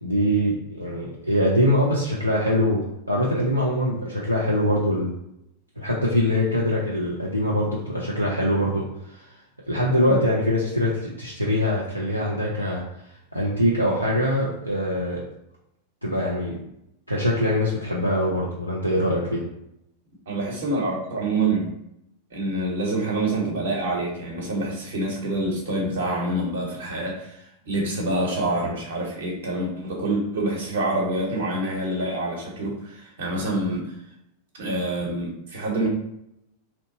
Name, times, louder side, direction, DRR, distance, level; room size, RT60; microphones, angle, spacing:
voice 1, 0.0-5.1 5.8-9.3 9.7-12.8 13.3-15.2 16.0-16.6 17.1-19.4, equal, 90° right, -5 dB, 0.5 m, -23 dB
voice 2, 20.3-21.7 22.3-33.9 34.6-35.9, right 2 dB, 60° right, -3 dB, 1.1 m, -26 dB
2.8 x 2.2 x 3.9 m, 0.80 s
figure-of-eight pair, 90°, 0 cm